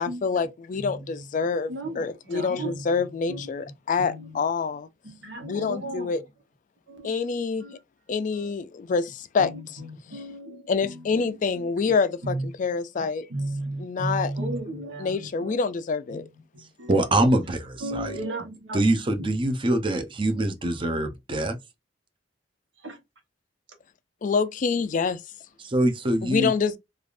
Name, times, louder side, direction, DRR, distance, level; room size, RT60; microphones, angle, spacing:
voice 1, 0.0-4.9 5.5-6.2 7.0-7.7 8.1-9.5 10.1-10.2 10.7-13.3 13.8-14.3 15.0-16.3 24.2-25.2 26.2-26.8, left 5 dB, 45° left, 0.3 m, -26 dB
voice 2, 0.8-1.2 1.7-3.5 4.0-4.4 5.0-6.1 6.9-7.1 7.6-7.8 8.4-8.5 9.4-11.4 11.9-12.5 13.0-15.6 16.1-16.3 16.5-16.9 17.8-18.8 19.2-19.4 20.3-20.9 22.8-23.0, right 1 dB, 85° right, 1.0 m, -35 dB
voice 3, 16.6-18.2 18.7-21.6 25.6-26.5, right 1 dB, 30° right, 0.6 m, -24 dB
3.3 x 2.4 x 2.4 m
head